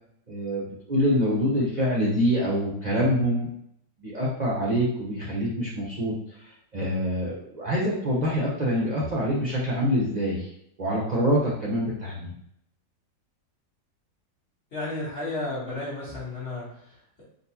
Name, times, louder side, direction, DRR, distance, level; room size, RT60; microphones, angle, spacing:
voice 1, 0.3-3.5 4.0-6.1 6.4-10.5 10.8-12.3, equal, 65° right, -6 dB, 0.4 m, -25 dB
voice 2, 14.7-17.2, left 2 dB, 40° left, -7 dB, 1.5 m, -33 dB
3.8 x 2.4 x 2.8 m, 0.73 s
omnidirectional pair, 1.8 m